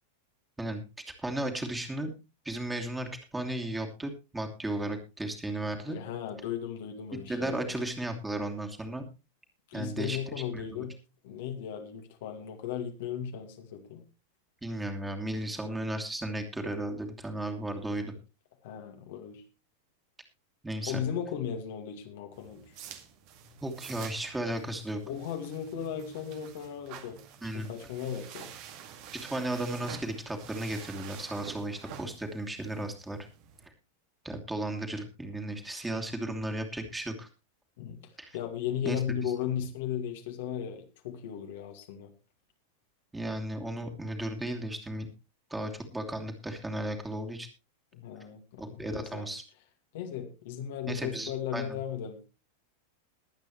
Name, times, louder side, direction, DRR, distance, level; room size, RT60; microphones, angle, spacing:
voice 1, 1.2-2.1 2.4-6.0 7.3-9.0 9.7-10.2 10.5-10.8 14.6-18.1 20.6-21.0 23.6-25.0 27.4-27.7 29.3-33.2 34.2-37.3 38.2-38.4 38.8-39.0 43.1-45.1 45.5-47.5 48.6-49.4 50.9-51.8, right 1 dB, 10° right, 4 dB, 2.7 m, -35 dB
voice 2, 5.9-7.8 9.7-11.0 11.2-14.0 18.6-19.4 20.9-22.6 25.1-28.5 37.8-38.0 38.3-42.1 47.9-49.3 49.9-52.2, left 9 dB, 55° left, 4 dB, 2.2 m, -36 dB
sound 1, 22.3-33.7, right 9 dB, 45° right, 2.0 m, -48 dB
21.5 x 8.9 x 3.1 m, 0.28 s
figure-of-eight pair, 90°, 0 cm